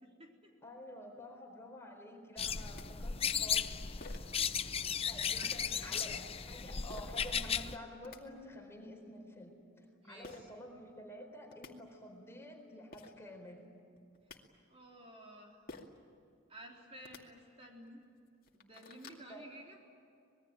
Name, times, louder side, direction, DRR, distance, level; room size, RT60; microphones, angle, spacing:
voice 1, 0.0-0.5 4.4-4.8 5.2-5.9 10.0-10.5 14.7-15.6 16.5-18.0 18.5-19.8, right 1 dB, 30° right, -1 dB, 3.7 m, -53 dB
voice 2, 0.6-3.8 5.1-13.7 19.3-19.5, left 1 dB, 15° left, 2 dB, 4.2 m, -50 dB
sound 1, 2.4-7.8, left 7 dB, 30° left, 0.7 m, -36 dB
sound 2, 2.8-2.9 4.0-4.4 5.4-5.6 6.9-7.2 7.8-8.2 10.2-10.4 11.2-11.3 11.5-11.7 12.6-12.7 12.9-13.1 14.0-14.4 15.7-16.0 16.9-17.2 17.9-18.0 18.3-19.2, left 3 dB, 45° left, 2.4 m, -51 dB
26.0 x 21.0 x 9.0 m, 2.5 s
head